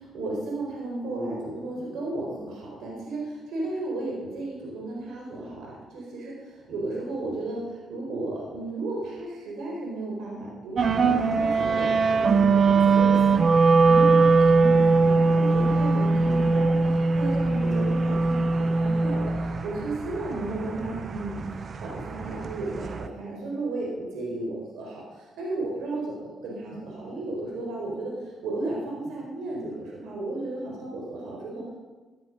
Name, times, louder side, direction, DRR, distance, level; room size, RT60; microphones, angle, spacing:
voice 1, 0.1-26.1 26.4-31.7, right 2 dB, 80° right, -2 dB, 4.6 m, -34 dB
sound 1, 10.8-23.1, right 4 dB, 45° right, 0.8 m, -21 dB
16.5 x 9.7 x 5.3 m, 1.3 s
cardioid pair, 90°, 0 cm